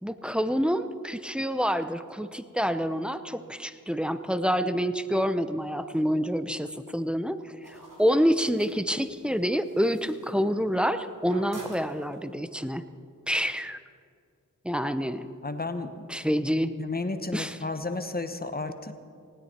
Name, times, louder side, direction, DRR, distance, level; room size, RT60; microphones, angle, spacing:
voice 1, 0.0-7.4 8.0-12.8 13.3-13.8 14.6-15.3 16.1-16.7 17.3-17.6, equal, 5° right, 10 dB, 0.7 m, -27 dB
sound 1, 7.6-10.9 11.2-12.4, right 1 dB, 70° right, 4.2 m, -49 dB
voice 2, 15.4-16.1 16.8-18.9, left 3 dB, 30° left, 8 dB, 1.1 m, -32 dB
19.5 x 17.0 x 4.4 m, 2.3 s
wide cardioid pair, 70°, 33 cm